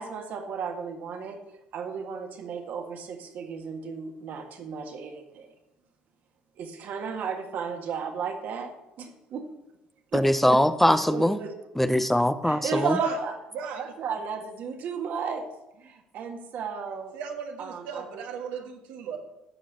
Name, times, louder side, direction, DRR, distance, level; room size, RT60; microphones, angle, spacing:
voice 1, 0.0-1.4 1.7-5.5 6.6-9.4 10.1-10.2 10.9-11.5 12.4-13.3 13.7-15.4 15.8-17.1 17.6-18.2, right 6 dB, 65° right, 1.8 m, -34 dB
voice 2, 10.1-11.4 11.7-13.0, left 1 dB, 5° left, 0.6 m, -22 dB
voice 3, 12.7-13.2 13.5-13.8 17.1-19.2, right 6 dB, 80° right, 1.5 m, -36 dB
13.0 x 5.0 x 6.3 m
supercardioid pair, 70°, 3 cm